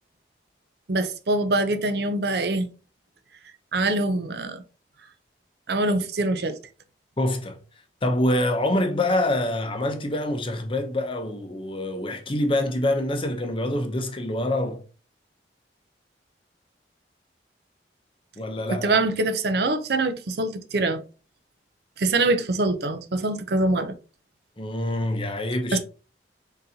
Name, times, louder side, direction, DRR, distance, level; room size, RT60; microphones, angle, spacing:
voice 1, 0.9-2.7 3.7-4.6 5.7-6.6 18.7-21.0 22.0-23.9 25.7-25.8, right 2 dB, 60° right, 0.6 m, -24 dB
voice 2, 7.2-7.6 8.0-14.8 18.4-18.9 24.6-25.8, left 1 dB, 30° left, 0.7 m, -25 dB
4.2 x 3.8 x 2.8 m
head